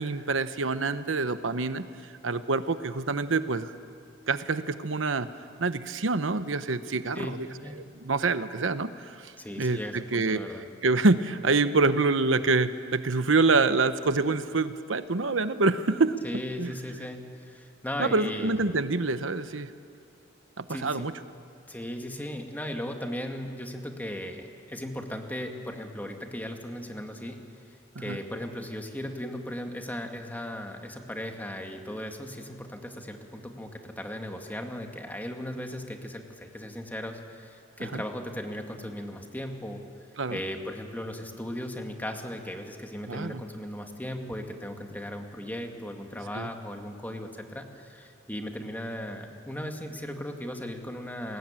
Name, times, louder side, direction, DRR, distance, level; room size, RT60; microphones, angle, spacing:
voice 1, 0.0-1.9 2.2-3.7 4.3-5.3 5.6-7.4 8.0-10.4 10.8-16.1 16.6-16.7 18.0-19.7 20.6-21.1 28.0-28.2 37.9-38.0 40.2-40.4 43.1-43.4 46.3-46.5, right 3 dB, 90° right, 11 dB, 1.0 m, -26 dB
voice 2, 9.4-10.7 16.2-18.6 20.7-21.1 21.7-27.4 28.0-39.8 40.3-51.4, equal, 10° left, 3 dB, 2.2 m, -37 dB
29.5 x 21.0 x 9.0 m, 2.5 s
head